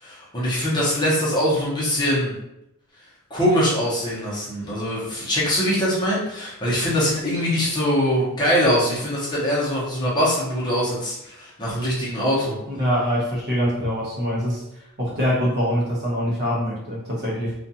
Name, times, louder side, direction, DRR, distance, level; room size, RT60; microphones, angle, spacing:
voice 1, 0.0-2.3 3.3-12.6, equal, 20° left, -7 dB, 0.8 m, -22 dB
voice 2, 12.7-14.6 15.0-17.5, equal, 50° right, -5 dB, 0.9 m, -24 dB
2.4 x 2.3 x 2.7 m, 0.84 s
head